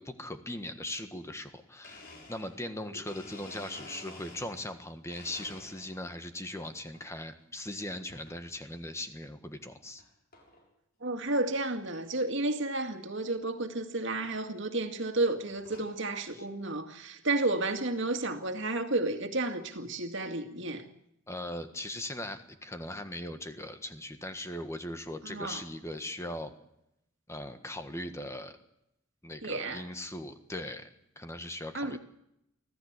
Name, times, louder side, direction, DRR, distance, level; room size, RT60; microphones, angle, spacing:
voice 1, 0.0-10.0 16.3-16.5 21.3-26.5 27.3-28.6 29.2-30.9 31.1-32.0, left 1 dB, 15° left, 1.5 m, -39 dB
Domestic sounds home sounds, 1.8-4.8 5.1-6.1 6.6-7.1 8.1-8.4 9.0-9.1 10.0-10.1 10.3-10.7 11.1-11.2 11.4-11.5 11.9-12.0 13.3-13.4 14.2-14.4 15.0-16.0, left 2 dB, 45° left, 6.4 m, -51 dB
voice 2, 11.0-20.8 25.2-25.6 29.4-29.8 31.7-32.0, right 2 dB, 60° right, 2.2 m, -32 dB
25.5 x 15.5 x 8.2 m
head